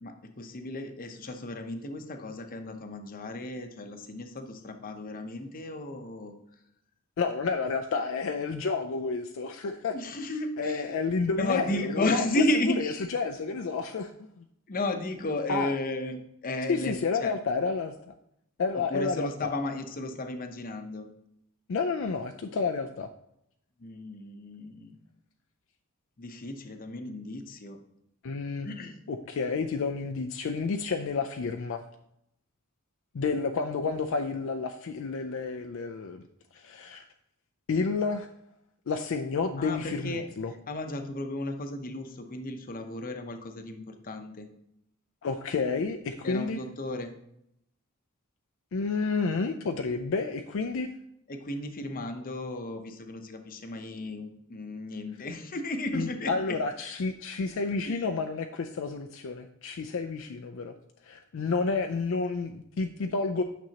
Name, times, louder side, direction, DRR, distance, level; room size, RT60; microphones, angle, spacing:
voice 1, 0.0-6.4 9.9-10.8 11.4-13.0 14.7-17.3 18.7-21.1 23.8-24.9 26.2-27.8 28.6-28.9 39.6-40.2 40.7-44.5 46.2-47.1 51.3-56.6 57.8-58.0, left 1 dB, 40° left, 6 dB, 0.7 m, -34 dB
voice 2, 7.2-10.0 10.6-14.4 15.5-15.7 16.7-17.9 18.6-19.5 21.7-23.1 28.2-28.7 29.1-31.8 33.1-36.2 36.5-37.1 37.7-38.3 38.9-40.5 45.2-46.6 48.7-50.9 55.9-60.7 61.0-63.4, left 4 dB, 65° left, 5 dB, 0.4 m, -30 dB
9.1 x 6.2 x 2.8 m, 0.77 s
head